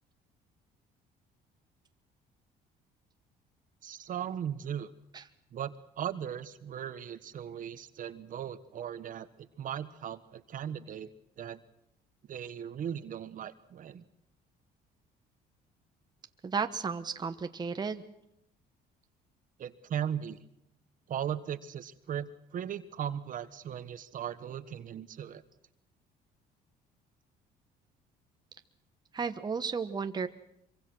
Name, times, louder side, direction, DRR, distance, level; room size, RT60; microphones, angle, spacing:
voice 1, 3.8-4.9 5.5-9.3 9.6-11.1 11.4-11.6 12.3-14.0 19.6-20.4 21.1-25.4, right 9 dB, 50° right, 12 dB, 1.3 m, -37 dB
voice 2, 16.4-18.0 29.1-30.3, right 5 dB, 25° right, 8 dB, 1.1 m, -33 dB
24.5 x 23.5 x 6.2 m, 0.79 s
cardioid pair, 110°, 17 cm